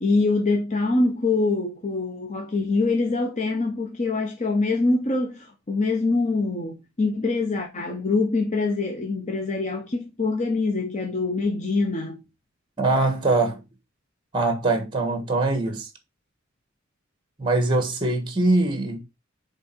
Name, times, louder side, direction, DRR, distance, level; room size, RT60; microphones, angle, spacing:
voice 1, 0.0-12.2, left 3 dB, 35° left, 0.9 m, -24 dB
voice 2, 12.8-13.6 14.3-15.9 17.4-19.0, right 2 dB, 25° right, 1.4 m, -22 dB
8.6 x 3.5 x 4.4 m
head